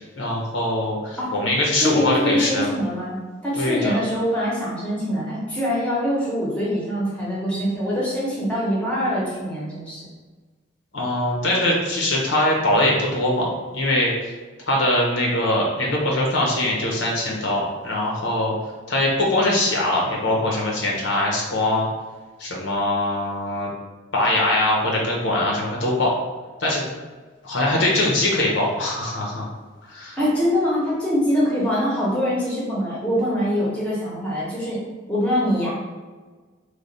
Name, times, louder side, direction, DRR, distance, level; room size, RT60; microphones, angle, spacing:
voice 1, 0.2-2.8 3.6-4.0 10.9-14.3 14.7-18.5 18.9-21.9 22.4-23.7 24.1-26.1 26.6-26.8 27.4-29.5 29.9-30.2, left 1 dB, 65° left, -3 dB, 0.8 m, -22 dB
voice 2, 1.8-10.0 30.2-34.8 35.1-35.7, equal, 5° left, -6 dB, 0.8 m, -24 dB
3.3 x 2.3 x 4.0 m, 1.4 s
head